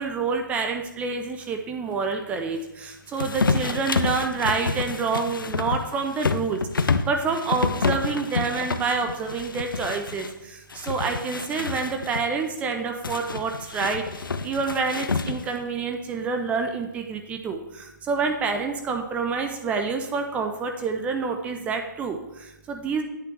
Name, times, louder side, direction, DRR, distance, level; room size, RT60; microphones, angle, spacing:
voice 1, 0.0-23.0, right 4 dB, 10° right, 5 dB, 0.4 m, -28 dB
sound 1, 3.2-10.3 10.7-12.3 13.0-15.6, left 4 dB, 85° left, 0.5 m, -28 dB
8.4 x 3.4 x 6.1 m, 0.93 s
hypercardioid pair, 140°, 11 cm